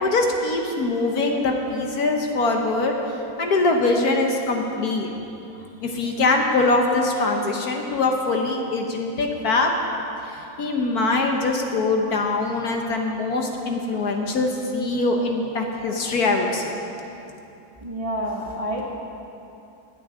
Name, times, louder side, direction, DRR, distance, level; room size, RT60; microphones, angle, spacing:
voice 1, 0.0-3.0 3.4-5.1 5.8-9.7 10.6-16.7, left 3 dB, 55° left, 2 dB, 1.4 m, -23 dB
voice 2, 17.8-18.9, equal, 25° right, -2 dB, 0.9 m, -28 dB
10.0 x 8.5 x 9.3 m, 2.8 s
omnidirectional pair, 2.1 m